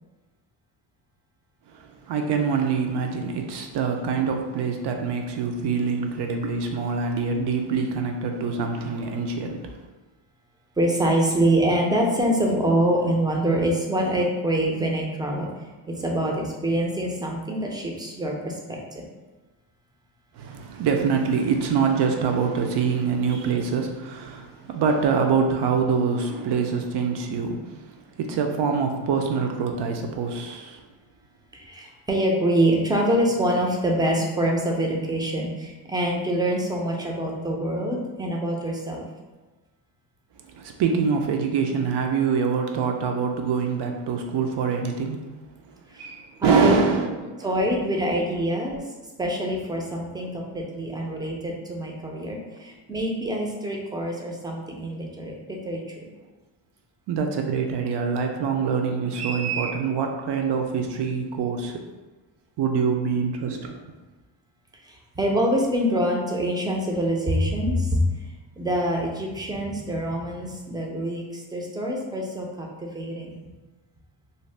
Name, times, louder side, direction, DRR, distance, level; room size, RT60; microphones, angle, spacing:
voice 1, 1.7-9.9 20.3-30.8 40.4-45.2 46.0-47.6 57.1-61.8 62.6-63.8, right 5 dB, 60° right, 3 dB, 0.6 m, -25 dB
voice 2, 10.8-19.1 31.5-39.1 45.9-46.1 46.4-46.8 47.4-48.8 49.2-55.8 64.8-73.4, right 1 dB, 10° right, -1 dB, 0.4 m, -25 dB
2.7 x 2.1 x 3.2 m, 1.2 s
cardioid pair, 90°, 47 cm